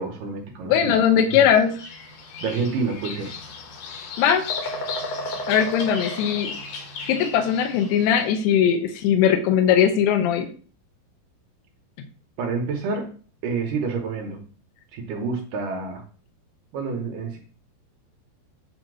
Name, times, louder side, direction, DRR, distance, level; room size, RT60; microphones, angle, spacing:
voice 1, 0.0-1.0 1.3-1.5 2.4-3.3 12.4-13.1 13.4-14.4 14.9-16.0 16.7-17.4, right 4 dB, 70° right, 2 dB, 2.1 m, -28 dB
voice 2, 0.7-1.7 4.2-4.4 5.5-6.5 7.1-10.5, left 8 dB, 85° left, 5 dB, 2.9 m, -19 dB
Bird vocalization bird call bird song, 1.5-8.2, left 3 dB, 70° left, 2.9 m, -34 dB
8.2 x 2.9 x 6.0 m, 0.41 s
omnidirectional pair, 4.6 m